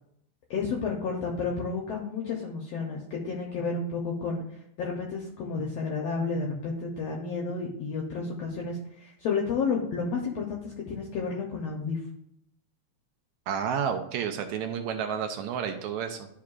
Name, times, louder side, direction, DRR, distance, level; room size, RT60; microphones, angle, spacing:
voice 1, 0.5-4.4 4.8-12.0, left 4 dB, 70° left, 0 dB, 1.7 m, -31 dB
voice 2, 13.5-16.3, right 7 dB, 75° right, 6 dB, 1.8 m, -30 dB
11.5 x 4.6 x 2.4 m, 0.74 s
omnidirectional pair, 3.6 m